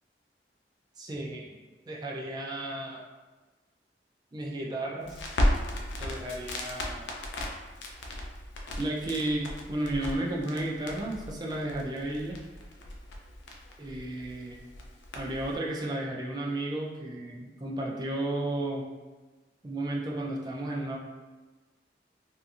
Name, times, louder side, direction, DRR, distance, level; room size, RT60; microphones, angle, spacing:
voice 1, 1.0-1.5 1.9-3.0 4.3-5.2 6.0-7.1 8.8-12.4 13.8-14.6 15.1-18.9 19.6-21.0, right 1 dB, 25° right, -2 dB, 0.4 m, -33 dB
Crackle, 5.0-15.6, left 1 dB, 80° left, 0.4 m, -35 dB
2.7 x 2.3 x 2.5 m, 1.2 s
head